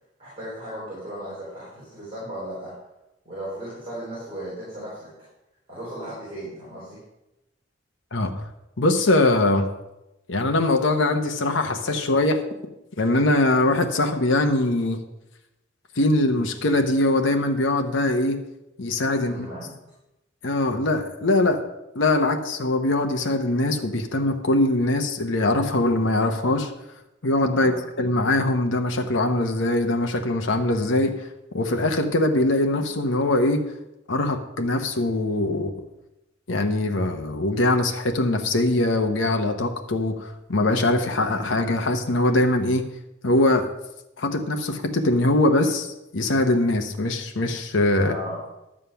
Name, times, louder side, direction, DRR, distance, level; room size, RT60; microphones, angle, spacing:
voice 1, 0.2-2.7 3.2-5.1 5.7-7.0 19.2-19.8 27.5-27.8 48.0-48.4, equal, 30° right, -8 dB, 4.1 m, -36 dB
voice 2, 8.8-9.7 10.3-12.4 13.0-15.0 16.0-18.4 18.8-19.5 20.4-21.6 21.9-26.7 27.2-27.7 28.0-31.1 31.5-33.6 34.1-35.7 36.5-42.9 43.2-43.7 44.2-48.1, left 2 dB, 65° left, 4 dB, 0.9 m, -22 dB
11.5 x 7.4 x 5.7 m, 0.92 s
head